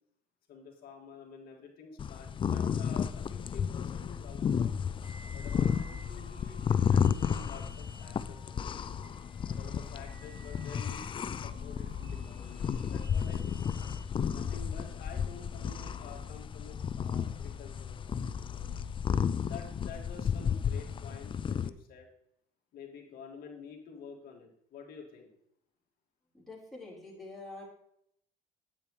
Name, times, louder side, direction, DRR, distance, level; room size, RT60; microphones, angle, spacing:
voice 1, 0.5-4.8 5.3-8.8 9.5-13.7 14.3-18.7 19.4-22.1 22.7-25.3, left 5 dB, 60° left, 0 dB, 2.1 m, -49 dB
sound 1, 2.0-21.7, left 7 dB, 30° left, 0.4 m, -33 dB
sound 2, 5.0-14.0, right 1 dB, 20° right, 3.7 m, -55 dB
voice 2, 26.3-27.6, left 2 dB, ahead, -6 dB, 4.0 m, -46 dB
8.6 x 8.5 x 3.2 m, 0.74 s
cardioid pair, 110°, 17 cm